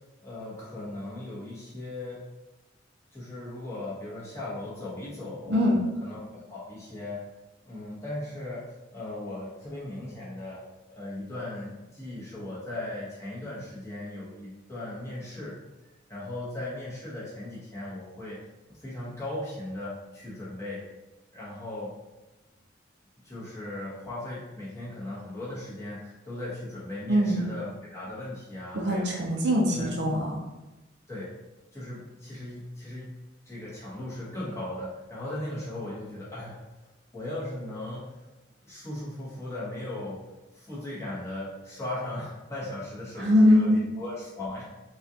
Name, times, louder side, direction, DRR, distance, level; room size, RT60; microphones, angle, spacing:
voice 1, 0.2-2.2 3.1-5.6 6.0-7.2 7.6-8.6 8.9-10.6 10.9-15.6 15.8-18.4 18.7-20.8 21.3-21.9 23.2-29.1 29.7-29.9 31.1-31.3 31.7-33.1 33.4-36.6 37.1-38.2 38.6-40.2 40.5-44.7, left 1 dB, 15° left, -8 dB, 1.1 m, -37 dB
voice 2, 5.5-5.8 27.1-27.4 28.7-30.4 43.2-43.9, left 1 dB, 65° right, -1 dB, 0.6 m, -22 dB
4.1 x 2.4 x 2.8 m, 1.1 s
head